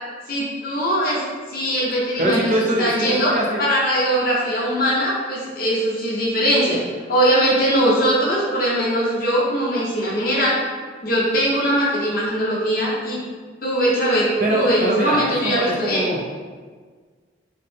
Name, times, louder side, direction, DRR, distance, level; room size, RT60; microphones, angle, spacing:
voice 1, 0.3-1.2 1.5-2.5 2.8-3.3 3.6-6.8 7.1-10.6 11.0-13.2 13.6-16.0, equal, 50° left, -6 dB, 0.9 m, -20 dB
voice 2, 2.2-3.6 14.4-16.2, right 1 dB, 45° right, -1 dB, 0.5 m, -23 dB
4.1 x 2.1 x 3.3 m, 1.5 s
head